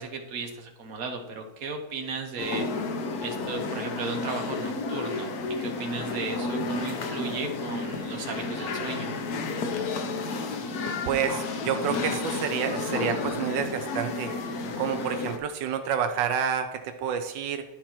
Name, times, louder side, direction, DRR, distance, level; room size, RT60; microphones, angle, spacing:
voice 1, 0.0-2.6 3.2-9.1, right 4 dB, 55° right, 4 dB, 1.5 m, -35 dB
sound 1, 2.4-15.4, left 3 dB, 65° left, 1.3 m, -31 dB
voice 2, 11.1-14.3 14.8-17.6, right 8 dB, 85° right, 8 dB, 1.3 m, -29 dB
11.0 x 4.4 x 4.4 m, 0.98 s
omnidirectional pair, 1.9 m